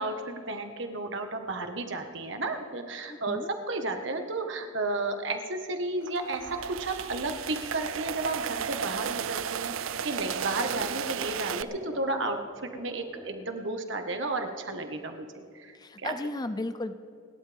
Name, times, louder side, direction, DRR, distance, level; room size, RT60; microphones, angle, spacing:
voice 1, 0.0-15.8 16.0-16.1, right 2 dB, 60° right, 5 dB, 1.6 m, -33 dB
voice 2, 3.1-3.5 15.7-16.9, left 2 dB, 20° left, 11 dB, 0.5 m, -35 dB
sound 1, 6.0-11.6, right 8 dB, 75° right, 0.5 m, -34 dB
sound 2, 6.4-13.6, right 1 dB, ahead, 3.9 m, -50 dB
30.0 x 12.0 x 3.6 m, 2.5 s
head